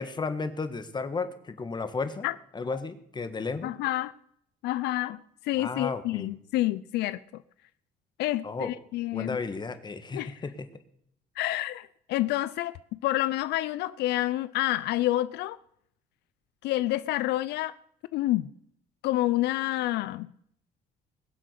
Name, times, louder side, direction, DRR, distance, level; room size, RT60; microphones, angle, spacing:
voice 1, 0.0-2.3 2.5-3.7 5.6-6.3 8.4-8.7 9.1-10.7, left 4 dB, 25° left, 1.6 m, -33 dB
voice 2, 3.6-4.1 4.6-7.2 8.2-9.4 10.1-10.4 11.4-15.6 16.6-17.7 18.1-18.5 19.0-20.3, left 16 dB, 80° left, 0.5 m, -28 dB
21.5 x 7.6 x 6.7 m
cardioid pair, 110°, 17 cm